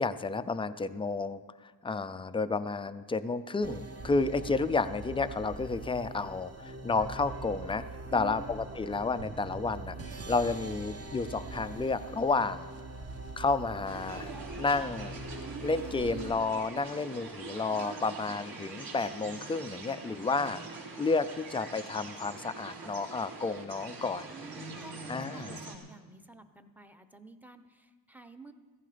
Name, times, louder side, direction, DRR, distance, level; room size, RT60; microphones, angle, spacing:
voice 1, 0.0-7.8 8.1-12.7 13.4-14.3 14.6-15.1 15.6-20.6 21.0-24.2 25.1-25.6, left 3 dB, 15° left, 12 dB, 0.4 m, -31 dB
sound 1, 3.6-16.3, right 2 dB, 30° right, 1.0 m, -42 dB
voice 2, 8.1-8.6 18.3-18.4 24.3-28.5, right 3 dB, 5° right, 8 dB, 0.8 m, -50 dB
sound 2, 13.8-25.8, right 3 dB, 70° right, 3.8 m, -43 dB
15.5 x 15.0 x 5.0 m, 1.4 s
cardioid pair, 125°, 46 cm